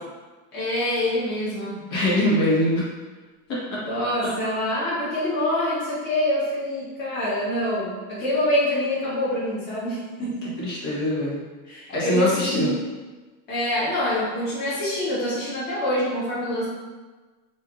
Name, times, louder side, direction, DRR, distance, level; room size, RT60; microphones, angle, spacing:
voice 1, 0.5-1.8 3.9-10.6 11.7-12.8 13.5-16.7, left 1 dB, 25° left, -9 dB, 1.1 m, -25 dB
voice 2, 1.9-2.8 3.5-3.8 10.4-12.7, left 1 dB, 65° left, -6 dB, 1.4 m, -24 dB
4.5 x 2.7 x 2.4 m, 1.3 s
supercardioid pair, 160°, 41 cm